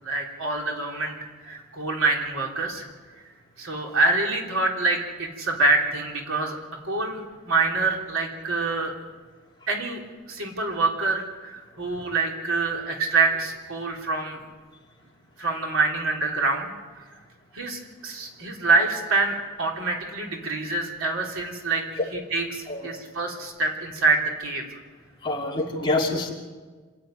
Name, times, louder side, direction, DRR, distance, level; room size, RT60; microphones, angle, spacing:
voice 1, 0.0-2.9 3.6-6.6 6.8-8.9 9.7-10.0 10.3-14.4 15.4-16.7 17.5-21.8 22.1-24.8 25.7-25.9, right 3 dB, 65° right, 0 dB, 3.4 m, -26 dB
voice 2, 22.7-23.0 25.2-26.3, left 2 dB, 20° left, -2 dB, 2.9 m, -26 dB
27.0 x 11.5 x 9.4 m, 1.4 s
head